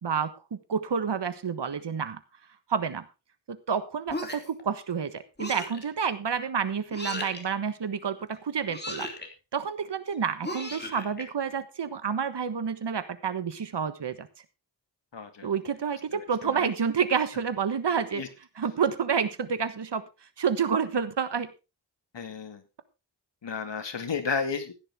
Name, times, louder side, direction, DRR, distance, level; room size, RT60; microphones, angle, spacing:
voice 1, 0.0-2.2 2.7-3.0 3.5-9.1 9.5-14.3 15.4-18.2 18.6-20.0 20.4-21.5, right 6 dB, 70° right, 12 dB, 1.4 m, -29 dB
sound 1, 4.1-4.6 5.4-5.8 6.9-7.5 8.7-9.3 10.4-11.2, left 1 dB, 25° left, 2.9 m, -36 dB
voice 2, 15.1-15.5 16.1-16.7 18.1-18.3 22.1-22.6 23.4-24.7, left 5 dB, 75° left, 7 dB, 2.2 m, -33 dB
15.5 x 10.0 x 3.6 m, 0.29 s
wide cardioid pair, 105°, 43 cm